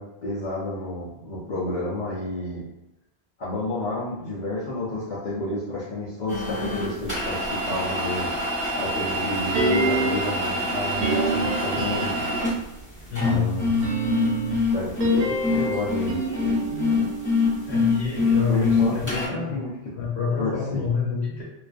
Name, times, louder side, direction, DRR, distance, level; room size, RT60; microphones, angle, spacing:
voice 1, 0.0-2.6 3.4-8.3 8.8-12.1 13.2-13.7 14.7-17.1 18.5-19.7 20.4-20.8, left 1 dB, 50° left, -8 dB, 0.6 m, -30 dB
sound 1, 6.3-19.3, left 3 dB, 10° right, 0.9 m, -25 dB
sound 2, 9.5-10.4 11.0-12.6 13.7-17.9 18.2-18.3, right 3 dB, 65° right, 0.7 m, -27 dB
voice 2, 13.1-13.6 17.7-19.6 19.9-21.4, left 6 dB, 75° left, -3 dB, 1.1 m, -27 dB
2.4 x 2.3 x 2.4 m, 0.90 s
omnidirectional pair, 1.1 m